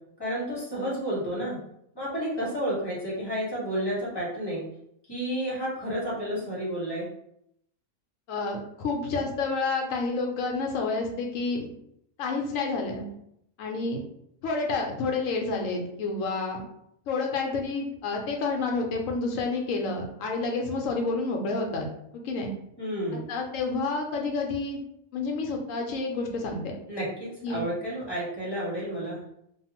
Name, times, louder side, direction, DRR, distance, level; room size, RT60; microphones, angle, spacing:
voice 1, 0.2-1.6 1.9-4.6 5.1-7.0 22.8-23.3 26.9-27.1 27.5-29.2, equal, 20° left, -7 dB, 0.9 m, -31 dB
voice 2, 8.3-11.7 12.2-13.1 13.6-14.0 14.4-16.6 17.1-21.9 22.1-22.5 23.1-24.8 25.1-26.6 27.4-27.7, left 3 dB, 75° left, 1 dB, 1.0 m, -29 dB
2.6 x 2.4 x 2.8 m, 0.75 s
omnidirectional pair, 1.4 m